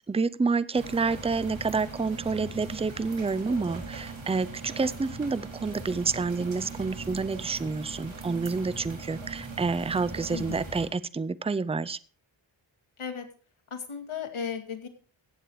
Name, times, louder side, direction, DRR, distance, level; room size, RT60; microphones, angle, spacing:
voice 1, 0.1-12.0, right 4 dB, 15° right, 17 dB, 0.5 m, -28 dB
sound 1, 0.7-10.9, right 3 dB, 70° right, 4.6 m, -40 dB
voice 2, 10.3-10.7 13.0-13.3 13.7-14.9, left 7 dB, 85° left, 6 dB, 2.3 m, -35 dB
15.5 x 8.5 x 4.7 m, 0.39 s
wide cardioid pair, 120°, 48 cm